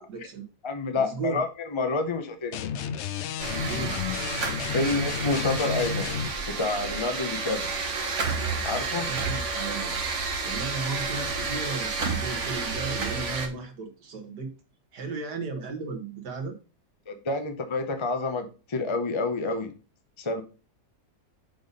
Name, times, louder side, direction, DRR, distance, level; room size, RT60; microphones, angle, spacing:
voice 1, 0.0-0.5 0.9-1.4 3.6-4.0 8.9-9.9 10.4-14.5 14.9-16.6, right 4 dB, 85° right, 5 dB, 2.0 m, -35 dB
voice 2, 0.6-2.7 4.7-6.1 6.5-7.7 8.6-9.1 17.1-19.7 20.2-20.4, left 3 dB, 35° left, 6 dB, 0.4 m, -28 dB
sound 1, 2.5-6.4, left 7 dB, 75° left, 0.6 m, -32 dB
sound 2, 3.4-13.5, right 4 dB, 50° right, 1.4 m, -30 dB
6.7 x 4.1 x 5.2 m, 0.34 s
omnidirectional pair, 1.7 m